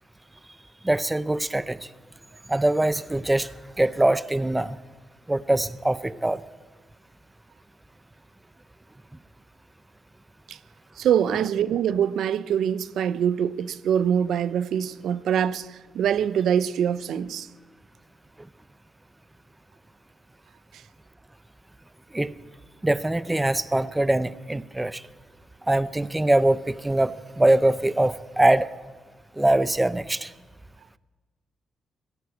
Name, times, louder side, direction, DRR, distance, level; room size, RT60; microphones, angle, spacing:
voice 1, 0.8-1.8 2.5-3.5 3.8-4.8 5.3-6.4 22.1-22.3 22.8-25.0 25.7-28.7 29.4-30.3, right 1 dB, 10° right, 0.5 m, -23 dB
voice 2, 11.0-17.5, right 9 dB, 80° right, 0.5 m, -24 dB
17.5 x 9.2 x 8.3 m
cardioid pair, 85°, 0 cm